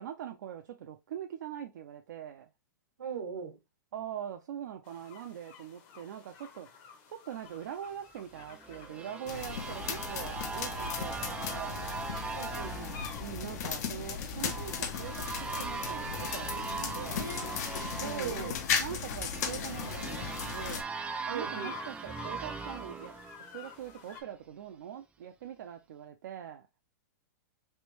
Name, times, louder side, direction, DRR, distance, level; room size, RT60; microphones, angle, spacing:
voice 1, 0.0-2.5 3.9-11.9 13.2-17.3 18.0-18.5 18.8-20.8 21.3-26.7, right 10 dB, 70° right, 0.5 m, -43 dB
voice 2, 3.0-3.6 12.3-13.0 17.1-17.6 18.0-18.6 21.3-21.8, right 6 dB, 90° right, 1.2 m, -39 dB
sound 1, 4.8-24.2, left 7 dB, 45° left, 1.0 m, -52 dB
sound 2, 8.3-24.0, right 5 dB, 10° right, 0.3 m, -40 dB
sound 3, 9.3-20.8, left 7 dB, 60° left, 0.7 m, -36 dB
3.3 x 2.5 x 3.1 m
hypercardioid pair, 125°, 10 cm